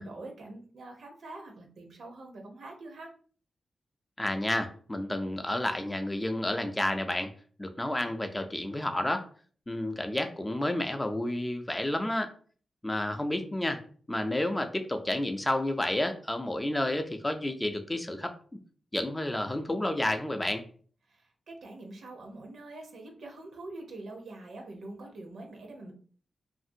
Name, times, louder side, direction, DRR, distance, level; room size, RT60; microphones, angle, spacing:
voice 1, 0.0-3.1 21.1-25.9, right 2 dB, 80° right, 2 dB, 0.7 m, -45 dB
voice 2, 4.2-7.3 7.6-9.3 9.7-12.3 12.8-13.8 14.1-18.3 18.9-20.6, left 1 dB, 15° left, 6 dB, 0.4 m, -30 dB
2.7 x 2.5 x 2.6 m, 0.44 s
cardioid pair, 90°, 0 cm